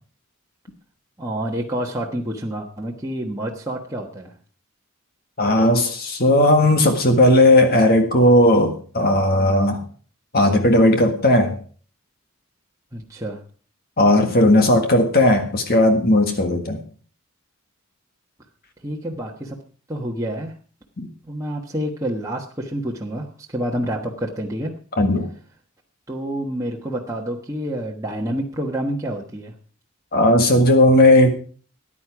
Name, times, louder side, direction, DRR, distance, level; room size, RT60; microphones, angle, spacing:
voice 1, 1.2-4.3 12.9-13.4 18.8-19.6 19.9-20.5 21.3-24.7 26.1-29.5, right 1 dB, 15° right, -2 dB, 1.3 m, -28 dB
voice 2, 5.4-9.8 10.3-11.6 14.0-16.8 21.0-21.1 25.0-25.3 30.1-31.3, left 1 dB, 45° left, 5 dB, 1.7 m, -16 dB
14.0 x 10.0 x 4.8 m, 0.42 s
head